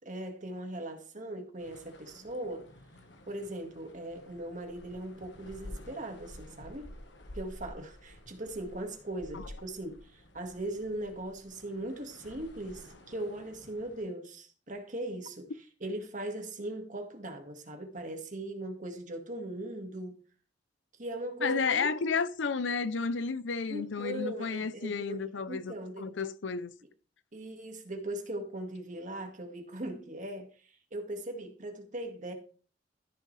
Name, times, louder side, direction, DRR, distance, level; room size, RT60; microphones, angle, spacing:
voice 1, 0.0-2.7 3.3-6.9 7.3-20.2 21.0-21.9 23.7-26.1 27.3-32.3, right 1 dB, 45° right, 1.9 m, -39 dB
sound 1, 1.6-14.0, left 1 dB, 70° left, 1.5 m, -51 dB
voice 2, 21.4-26.7, left 5 dB, 85° left, 0.6 m, -32 dB
13.5 x 6.5 x 3.3 m
head